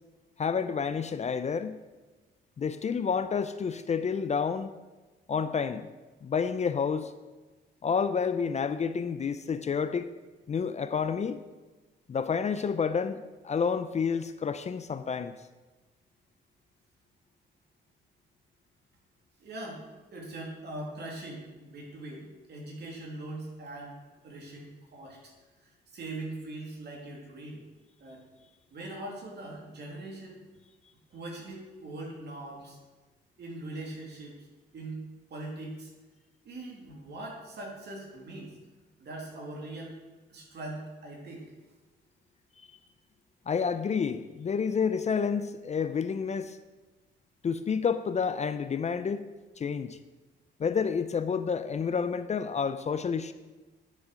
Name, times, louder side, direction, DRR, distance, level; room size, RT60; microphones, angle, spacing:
voice 1, 0.4-1.8 2.6-4.7 5.3-5.9 6.2-7.1 7.8-10.1 10.5-11.4 12.1-15.3 43.5-46.6 47.4-49.3 49.6-50.0 50.6-53.3, left 6 dB, 35° left, 11 dB, 0.5 m, -29 dB
voice 2, 19.4-19.8 20.1-24.0 24.2-25.3 25.9-27.6 28.0-28.2 28.7-30.4 31.1-32.8 33.4-34.3 34.7-35.0 35.3-35.9 36.4-38.5 39.0-39.9 40.3-41.5, right 2 dB, 55° right, -1 dB, 2.9 m, -41 dB
9.8 x 6.6 x 5.0 m, 1.2 s
cardioid pair, 90°, 20 cm